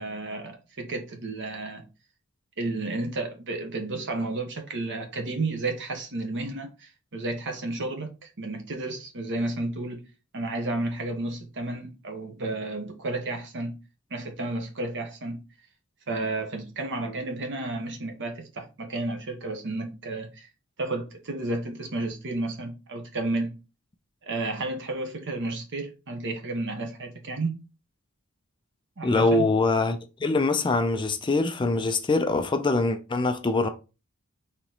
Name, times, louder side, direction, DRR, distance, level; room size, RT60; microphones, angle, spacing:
voice 1, 0.0-1.8 2.6-10.0 10.3-13.7 14.1-15.4 16.1-20.5 20.8-23.5 24.3-27.6 29.0-29.5, right 2 dB, 55° right, 1.0 m, -32 dB
voice 2, 29.0-33.7, left 3 dB, 20° left, 0.4 m, -24 dB
4.4 x 3.0 x 3.8 m
head